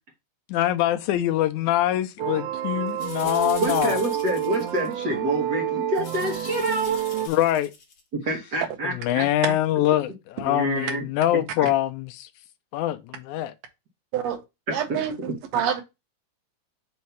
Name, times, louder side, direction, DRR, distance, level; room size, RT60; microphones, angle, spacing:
voice 1, 0.5-4.0 7.3-7.7 8.8-12.3 12.7-13.5, left 13 dB, 85° left, 2.0 m, -24 dB
sound 1, 2.2-7.3, right 11 dB, 85° right, 2.1 m, -28 dB
sound 2, 2.9-5.0 5.9-8.0, left 4 dB, 50° left, 2.2 m, -42 dB
voice 2, 3.6-7.1 8.1-9.3 10.4-11.0 14.9-15.0, right 1 dB, 45° right, 1.5 m, -27 dB
voice 3, 14.7-15.8, right 8 dB, 65° right, 2.0 m, -27 dB
5.6 x 3.1 x 5.6 m
omnidirectional pair, 3.5 m